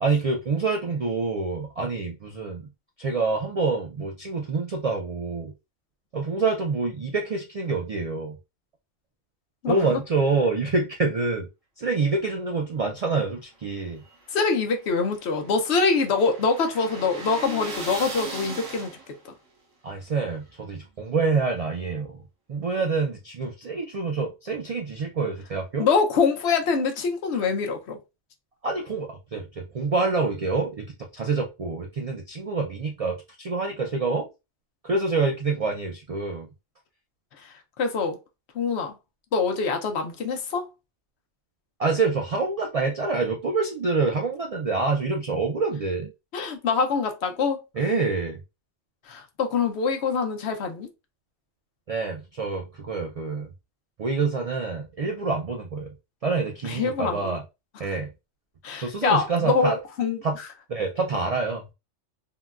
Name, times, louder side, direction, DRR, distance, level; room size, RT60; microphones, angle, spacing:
voice 1, 0.0-2.7 3.0-5.5 6.1-8.4 9.7-11.5 11.8-14.0 19.8-22.2 22.5-25.9 28.6-34.3 34.8-36.5 41.8-46.1 47.8-48.4 51.9-53.5 54.0-55.9 56.2-57.4 57.8-58.1 58.8-59.8 60.2-60.4 60.7-61.6, right 4 dB, 70° right, 0.3 m, -26 dB
sound 1, 13.8-19.3, right 3 dB, 90° right, 1.3 m, -38 dB
voice 2, 14.3-19.0 19.2-19.3 25.8-28.0 37.4-38.2 38.5-38.9 39.3-40.7 46.3-47.6 49.1-50.9 56.6-57.4 57.8-58.0 58.6-60.5, left 4 dB, 65° left, 0.9 m, -25 dB
3.7 x 2.2 x 2.3 m
omnidirectional pair, 1.2 m